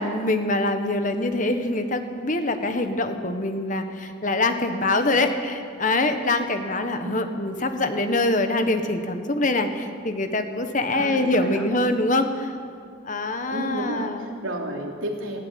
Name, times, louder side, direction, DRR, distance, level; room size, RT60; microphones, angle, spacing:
voice 1, 0.0-12.5 13.0-14.3, left 2 dB, 40° left, 7 dB, 1.5 m, -24 dB
voice 2, 10.9-11.7 13.5-15.4, right 1 dB, 85° right, 1 dB, 3.4 m, -31 dB
19.0 x 16.0 x 9.5 m, 2.3 s
head